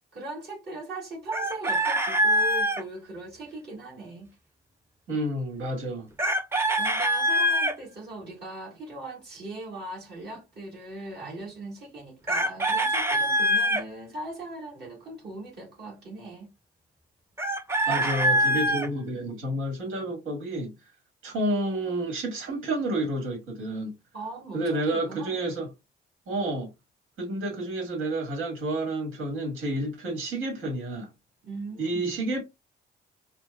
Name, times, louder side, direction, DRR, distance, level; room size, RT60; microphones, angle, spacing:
voice 1, 0.0-4.4 6.8-16.5 24.1-25.4 31.4-32.2, right 2 dB, 55° right, 1.7 m, -39 dB
Chicken rooster, 1.3-2.8 6.2-7.7 12.3-13.8 17.4-18.9, equal, 10° right, 0.6 m, -24 dB
voice 2, 5.1-6.1 17.9-20.7 21.2-23.9 24.5-25.7 26.3-26.7 27.2-31.1 31.8-32.4, right 1 dB, 85° right, 1.7 m, -30 dB
4.4 x 2.2 x 2.3 m
cardioid pair, 90°, 20 cm